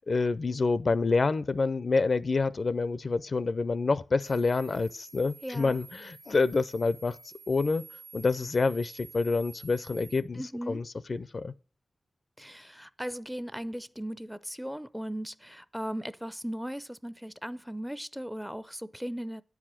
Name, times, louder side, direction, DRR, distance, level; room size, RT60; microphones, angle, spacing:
voice 1, 0.1-7.2 7.5-7.8 8.1-11.5, left 3 dB, 55° left, 0.4 m, -27 dB
sound 1, 4.2-10.2, right 4 dB, 85° right, 0.9 m, -50 dB
voice 2, 5.4-5.8 10.4-10.8 12.4-19.4, equal, 5° right, 0.4 m, -37 dB
9.5 x 4.8 x 7.4 m
cardioid pair, 65°, 0 cm